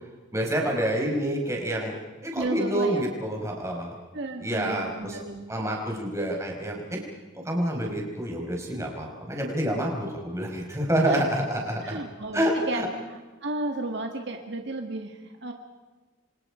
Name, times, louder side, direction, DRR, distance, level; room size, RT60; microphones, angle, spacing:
voice 1, 0.3-1.9 2.2-3.9 4.4-5.2 5.5-7.0 7.5-12.0 12.3-12.9, right 1 dB, 15° right, 0 dB, 5.2 m, -28 dB
voice 2, 2.3-3.0 4.1-5.5 11.0-11.2 11.8-12.8 13.4-15.5, right 2 dB, 60° right, 3 dB, 1.8 m, -33 dB
29.0 x 25.5 x 5.1 m, 1.3 s
head